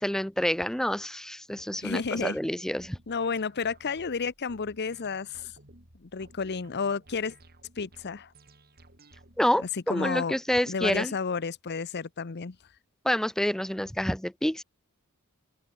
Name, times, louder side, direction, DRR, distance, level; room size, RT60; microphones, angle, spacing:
voice 1, 0.0-3.0 9.4-11.1 13.0-14.6, equal, ahead, 0.5 m, -28 dB
voice 2, 1.8-2.4 3.1-5.5 6.0-7.4 7.8-8.3 9.9-10.4 10.7-12.6, left 5 dB, 50° left, 0.7 m, -31 dB
sound 1, 2.8-9.6, right 1 dB, 45° right, 6.0 m, -56 dB
open air
head